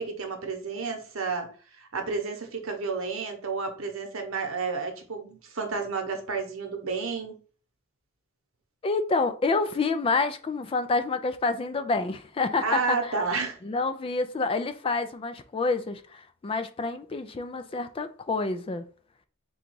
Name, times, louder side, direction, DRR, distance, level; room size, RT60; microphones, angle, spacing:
voice 1, 0.0-1.5 1.8-7.4 12.6-13.6, right 4 dB, 70° right, 0.9 m, -31 dB
voice 2, 8.8-13.1 13.6-18.8, left 3 dB, 25° left, 0.3 m, -28 dB
3.8 x 2.3 x 4.5 m
head